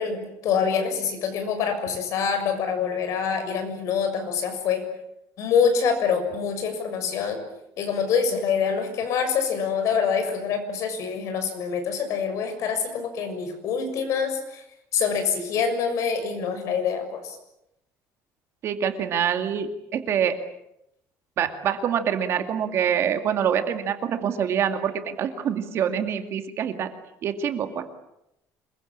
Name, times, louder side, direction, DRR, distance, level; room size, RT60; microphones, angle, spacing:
voice 1, 0.0-4.8 5.4-7.4 7.8-14.6 14.9-17.2, left 6 dB, 55° left, 7 dB, 6.8 m, -25 dB
voice 2, 18.6-20.4 21.4-26.9 27.2-27.9, right 8 dB, 45° right, 7 dB, 2.3 m, -25 dB
27.0 x 23.0 x 8.8 m, 0.83 s
cardioid pair, 165°, 6 cm